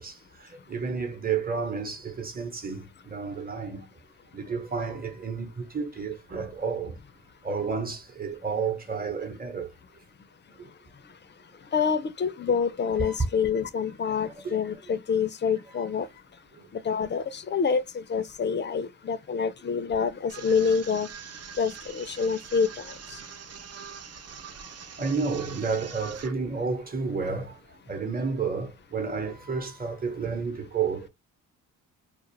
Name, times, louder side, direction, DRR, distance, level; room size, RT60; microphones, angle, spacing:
voice 1, 0.0-3.9 4.3-7.0 7.4-9.7 10.6-10.7 13.0-13.2 14.1-14.6 15.7-15.8 16.5-16.7 25.0-27.6 27.9-31.1, right 5 dB, 25° right, 1.0 m, -31 dB
voice 2, 11.7-16.1 16.8-21.1 21.6-22.7, left 6 dB, 30° left, 0.5 m, -27 dB
sound 1, 20.3-26.3, right 7 dB, 45° right, 0.5 m, -43 dB
2.4 x 2.1 x 2.9 m
cardioid pair, 60°, 36 cm